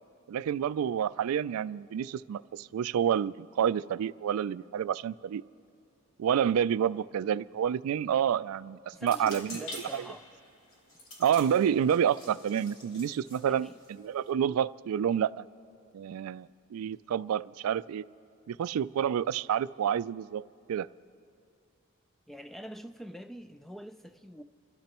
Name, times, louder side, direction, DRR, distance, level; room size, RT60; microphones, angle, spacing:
voice 1, 0.3-5.4 6.2-9.6 9.9-10.1 11.2-15.4 15.9-18.1 18.5-20.4 20.7-20.9, right 9 dB, 85° right, 0.3 m, -29 dB
voice 2, 8.9-10.3 13.5-13.8 22.3-24.4, equal, ahead, 0.3 m, -45 dB
sound 1, 9.0-14.3, left 1 dB, 75° left, 2.9 m, -47 dB
28.5 x 13.5 x 3.0 m
head